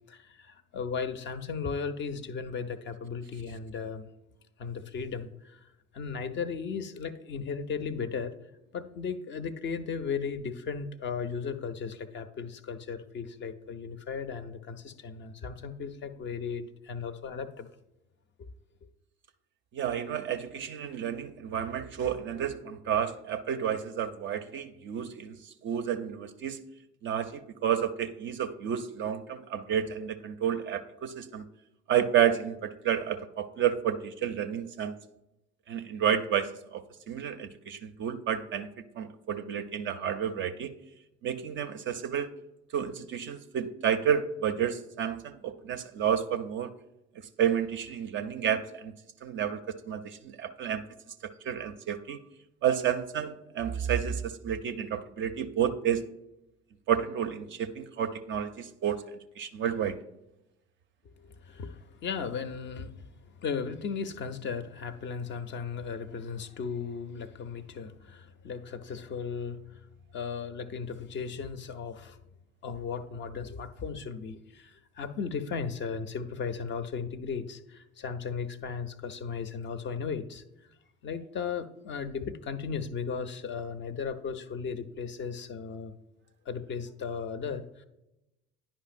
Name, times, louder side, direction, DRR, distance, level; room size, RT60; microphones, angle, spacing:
voice 1, 0.1-4.1 4.6-5.7 5.9-8.4 8.7-17.7 18.4-18.5 61.1-69.9 70.1-72.2 72.6-80.4 81.0-85.9 86.5-87.8, left 6 dB, 30° left, 9 dB, 0.5 m, -36 dB
voice 2, 19.7-25.4 25.6-26.6 27.0-31.4 31.9-34.9 35.7-38.7 39.0-40.7 41.2-42.3 42.7-46.7 47.4-48.9 49.2-49.6 49.9-50.8 51.4-52.2 52.6-56.0 56.9-59.0 59.4-60.0, right 9 dB, 35° right, 11 dB, 0.4 m, -30 dB
9.9 x 5.2 x 2.5 m, 0.93 s
figure-of-eight pair, 65°, 36 cm